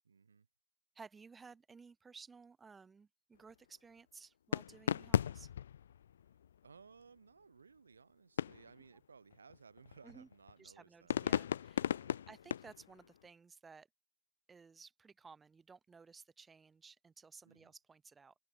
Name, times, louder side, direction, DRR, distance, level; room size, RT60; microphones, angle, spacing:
voice 1, 0.0-0.5 6.2-6.4 6.6-11.4 11.9-12.3 17.4-17.7, right 5 dB, 80° right, 4.4 m, -61 dB
voice 2, 0.9-5.5 10.0-10.3 10.6-11.9 12.3-13.9 14.5-18.3, right 5 dB, 15° right, 2.0 m, -57 dB
sound 1, 4.5-6.5 8.4-8.8 9.3-10.5 11.1-13.2, left 9 dB, 70° left, 0.3 m, -36 dB
open air
figure-of-eight pair, 90°, 0 cm